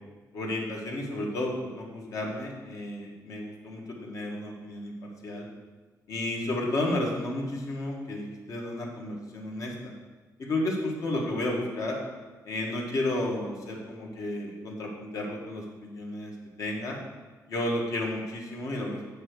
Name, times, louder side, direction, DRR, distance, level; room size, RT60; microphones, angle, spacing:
voice 1, 0.3-5.5 6.1-9.9 10.4-12.0 12.4-16.3 16.6-17.0 17.5-19.0, left 1 dB, 55° left, -1 dB, 1.6 m, -32 dB
8.6 x 3.5 x 6.5 m, 1.3 s
wide cardioid pair, 150°, 7 cm